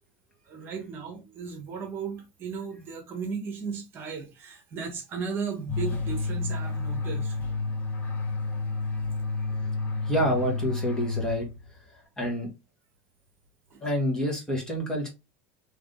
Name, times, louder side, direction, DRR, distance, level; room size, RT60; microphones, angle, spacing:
voice 1, 0.5-7.5 13.7-13.8, right 5 dB, 40° right, 1.3 m, -36 dB
sound 1, 5.7-11.8, left 3 dB, 35° left, 0.8 m, -30 dB
voice 2, 10.1-11.5 12.2-12.5 13.8-15.1, equal, 10° left, 1.6 m, -27 dB
3.5 x 3.1 x 3.8 m
supercardioid pair, 135°, 6 cm